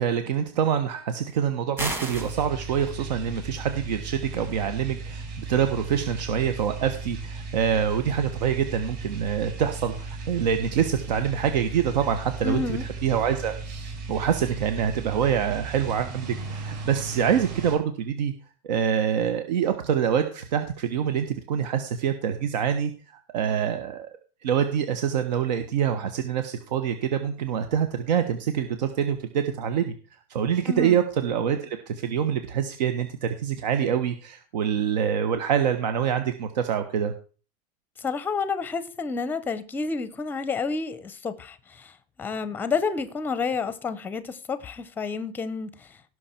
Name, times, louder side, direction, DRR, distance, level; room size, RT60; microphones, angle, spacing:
voice 1, 0.0-18.3 18.6-22.9 23.3-24.1 24.4-29.9 30.3-37.1, right 8 dB, 90° right, 1.2 m, -26 dB
sound 1, 1.8-2.4, right 2 dB, 10° right, 1.3 m, -30 dB
sound 2, 2.1-17.7, right 3 dB, 40° right, 5.3 m, -36 dB
voice 2, 12.4-12.8 30.7-31.0 38.0-46.0, left 4 dB, 10° left, 0.6 m, -30 dB
17.0 x 6.4 x 4.4 m
supercardioid pair, 170°, 21 cm